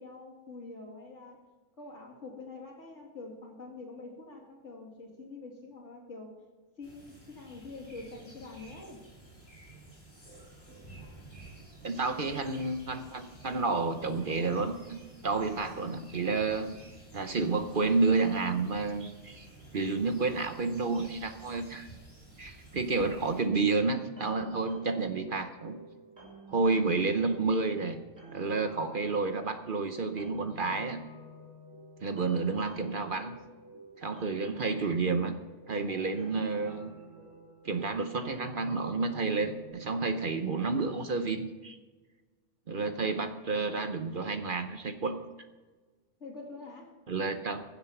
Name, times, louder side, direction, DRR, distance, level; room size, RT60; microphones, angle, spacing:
voice 1, 0.0-1.4 1.8-6.4 6.8-9.0 46.2-46.9, left 3 dB, 70° left, -1 dB, 2.8 m, -45 dB
sound 1, 6.8-23.4, right 2 dB, 45° left, 5.6 m, -52 dB
voice 2, 11.8-15.0 15.2-16.7 17.1-19.5 19.7-21.9 22.4-25.8 26.5-28.0 28.3-31.0 32.0-33.4 34.0-35.3 35.7-36.9 37.6-41.8 42.7-45.2 47.1-47.6, right 3 dB, 50° right, 8 dB, 0.9 m, -30 dB
sound 2, 23.8-39.7, right 1 dB, 30° right, 5.5 m, -51 dB
16.0 x 8.0 x 5.9 m, 1.3 s
omnidirectional pair, 1.3 m